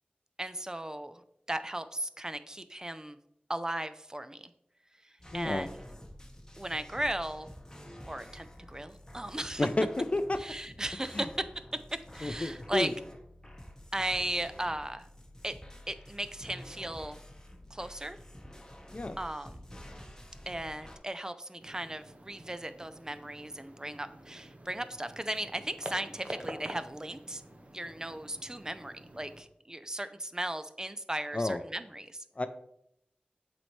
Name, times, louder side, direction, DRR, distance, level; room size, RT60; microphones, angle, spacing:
voice 1, 0.4-1.2 1.5-3.2 3.5-4.5 5.3-5.8 6.6-7.5 8.1-9.7 10.4-11.3 12.1-12.9 13.9-15.0 15.4-15.5 15.9-17.2 17.7-18.2 19.2-19.6 20.5-27.4 27.7-32.2, right 1 dB, 20° right, 12 dB, 0.4 m, -36 dB
sound 1, 5.2-21.0, left 1 dB, 20° left, 1.1 m, -49 dB
voice 2, 5.3-5.7 9.6-10.4 11.1-11.3 12.2-12.9 18.9-19.2 31.3-31.6 32.4-32.5, left 2 dB, 40° left, 10 dB, 0.4 m, -31 dB
sound 2, 21.6-29.4, right 1 dB, 45° right, 0.8 m, -47 dB
7.5 x 4.1 x 3.2 m, 0.76 s
wide cardioid pair, 55°, 3 cm